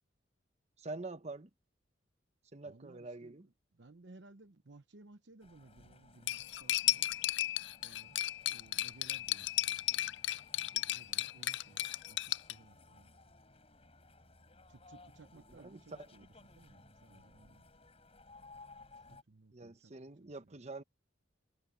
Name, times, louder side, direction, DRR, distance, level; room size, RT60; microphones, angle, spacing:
voice 1, 0.8-1.5 2.5-3.5 15.6-15.8 19.5-20.8, right 2 dB, 35° right, 1.0 m, -45 dB
voice 2, 2.6-3.3 3.7-7.1 7.8-8.2 8.5-10.1 10.5-13.1 14.7-17.7 19.1-20.6, right 2 dB, 65° right, 0.9 m, -59 dB
sound 1, 5.4-19.2, left 2 dB, 30° left, 7.1 m, -60 dB
Cutlery silverware, 6.3-12.5, left 15 dB, 65° left, 0.4 m, -34 dB
head